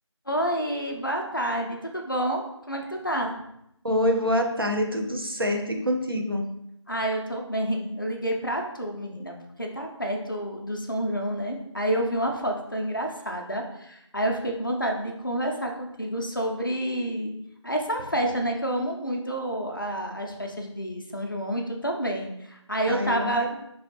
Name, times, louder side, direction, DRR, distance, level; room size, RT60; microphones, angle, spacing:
voice 1, 0.3-2.4 2.7-3.3 6.9-17.4 17.6-23.5, right 1 dB, 45° left, 2 dB, 0.4 m, -29 dB
voice 2, 3.8-6.5 22.9-23.6, left 1 dB, 50° right, 3 dB, 0.4 m, -26 dB
3.1 x 2.2 x 2.8 m, 0.80 s
figure-of-eight pair, 175°, 16 cm